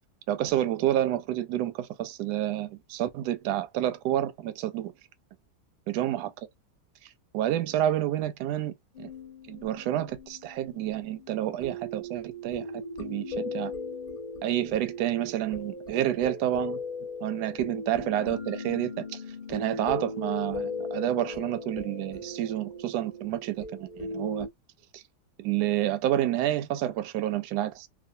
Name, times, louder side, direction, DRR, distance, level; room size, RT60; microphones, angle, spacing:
voice 1, 0.3-4.9 5.9-6.3 7.3-9.1 9.5-12.7 13.0-13.7 14.4-16.8 17.2-19.2 19.5-24.5 24.9-25.0 25.4-27.9, right 12 dB, 75° right, 1.0 m, -29 dB
sound 1, 8.9-24.5, left 2 dB, 35° left, 0.8 m, -38 dB
3.0 x 2.3 x 2.6 m
omnidirectional pair, 1.9 m